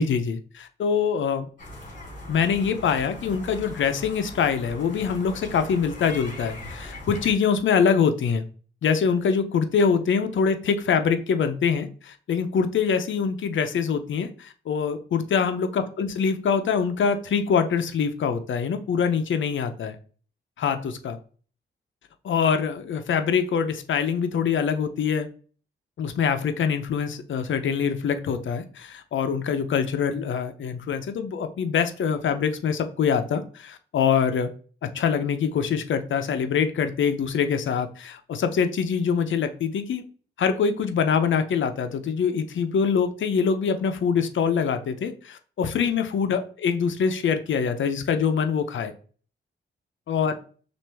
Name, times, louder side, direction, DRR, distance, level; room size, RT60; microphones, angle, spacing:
voice 1, 0.0-1.5 2.3-8.4 8.8-20.0 20.6-21.2 22.2-25.3 26.0-34.5 34.9-40.0 40.4-48.9 50.1-50.3, left 6 dB, 70° left, 9 dB, 0.6 m, -24 dB
sound 1, 1.6-7.3, left 1 dB, 40° left, 2.4 m, -40 dB
6.1 x 2.6 x 3.4 m, 0.41 s
cardioid pair, 105°, 20 cm